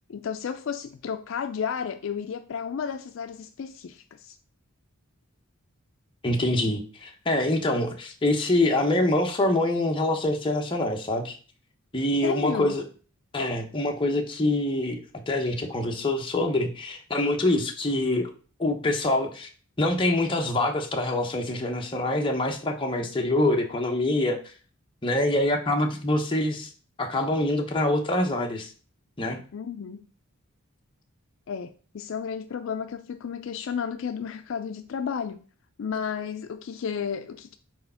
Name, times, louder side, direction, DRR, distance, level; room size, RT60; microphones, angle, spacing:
voice 1, 0.1-4.4 12.2-12.8 29.5-30.1 31.5-35.4 35.8-37.6, left 7 dB, 60° left, 0.3 m, -32 dB
voice 2, 6.2-11.3 11.9-12.8 13.3-18.3 18.6-19.5 19.8-24.5 25.0-26.7 27.0-28.7 29.2-29.4, left 1 dB, 20° left, 0.9 m, -25 dB
4.7 x 4.2 x 5.5 m
head